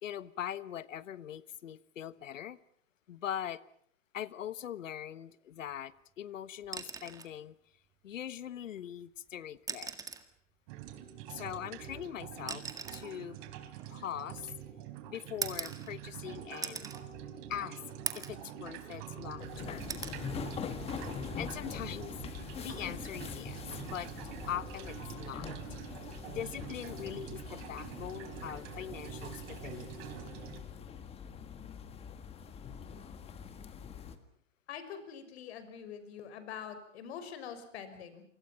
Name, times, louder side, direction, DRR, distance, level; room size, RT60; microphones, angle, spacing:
voice 1, 0.0-2.6 3.1-3.6 4.1-7.5 8.0-9.9 11.3-12.6 12.9-13.4 13.9-14.5 15.1-16.9 17.5-17.8 18.1-19.9 21.4-24.1 24.5-25.5 26.2-30.0, left 10 dB, 85° left, 17 dB, 1.4 m, -42 dB
sound 1, 6.6-7.4 8.8-8.9 9.6-10.3 11.5-14.6 15.4-16.2 16.6-17.0 17.5-17.6 18.1-18.4 18.9-19.5 19.9-20.2 21.7-21.9, right 5 dB, 10° right, 1.8 m, -41 dB
sound 2, 10.7-30.6, right 10 dB, 40° right, 3.6 m, -46 dB
sound 3, 19.4-34.2, left 6 dB, 15° left, 1.8 m, -44 dB
voice 2, 34.7-38.2, left 8 dB, 55° left, 10 dB, 5.8 m, -44 dB
28.5 x 25.0 x 5.9 m, 0.64 s
hypercardioid pair, 145°, 38 cm